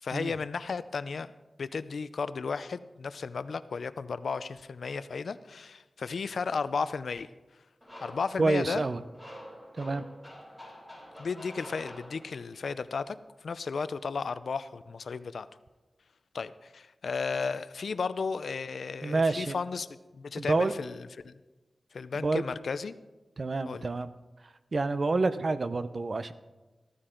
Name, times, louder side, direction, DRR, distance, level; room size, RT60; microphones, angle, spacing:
voice 1, 0.0-1.3 1.6-7.3 8.0-8.8 11.2-15.5 16.3-19.9 20.1-21.3 21.9-23.0 23.7-23.9, left 5 dB, 85° left, 14 dB, 0.5 m, -34 dB
sound 1, 7.8-12.6, equal, ahead, 5.4 m, -47 dB
voice 2, 8.4-9.0 9.8-10.0 19.0-19.5 20.4-20.7 22.1-22.4 23.4-24.1 24.7-26.3, right 3 dB, 50° right, 12 dB, 0.6 m, -28 dB
14.5 x 14.0 x 3.8 m, 1.2 s
wide cardioid pair, 110°, 0 cm